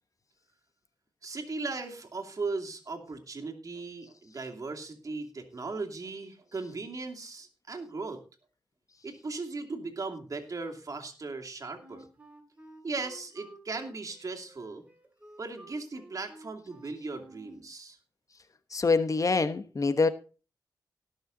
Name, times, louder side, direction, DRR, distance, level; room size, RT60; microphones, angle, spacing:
voice 1, 1.2-8.2 9.0-12.0 12.8-14.8 15.4-18.0, right 3 dB, 50° right, 2.7 m, -37 dB
Wind instrument woodwind instrument, 11.8-17.7, right 2 dB, 20° right, 3.2 m, -53 dB
voice 2, 18.7-20.1, left 4 dB, 45° left, 1.1 m, -25 dB
17.5 x 6.6 x 4.0 m
cardioid pair, 55°, 8 cm